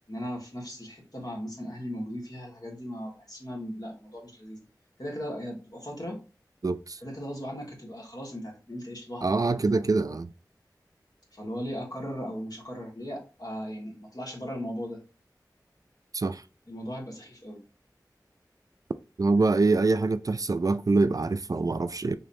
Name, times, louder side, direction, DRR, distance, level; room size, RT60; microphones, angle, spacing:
voice 1, 0.1-4.6 5.0-6.2 7.0-9.8 11.3-15.0 16.7-17.6, equal, 60° left, 1.7 m, -37 dB
voice 2, 6.6-7.0 9.2-10.3 16.1-16.4 19.2-22.1, right 3 dB, 50° right, 0.3 m, -25 dB
3.8 x 3.1 x 2.6 m
wide cardioid pair, 40°, 7 cm